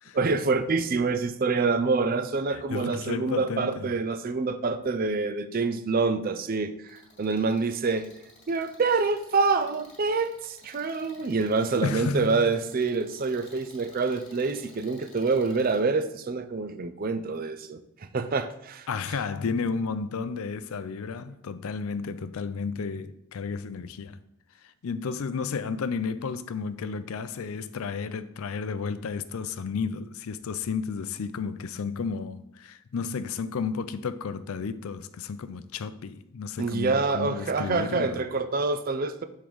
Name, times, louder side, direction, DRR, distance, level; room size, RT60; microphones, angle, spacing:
voice 1, 0.1-8.1 8.5-18.9 36.6-39.2, right 4 dB, 40° right, 0.4 m, -26 dB
voice 2, 2.5-3.9 11.8-12.5 18.9-24.2 24.6-38.2, left 5 dB, 70° left, 0.4 m, -32 dB
sound 1, 6.9-15.8, left 2 dB, 35° left, 1.9 m, -54 dB
7.0 x 3.7 x 4.7 m
head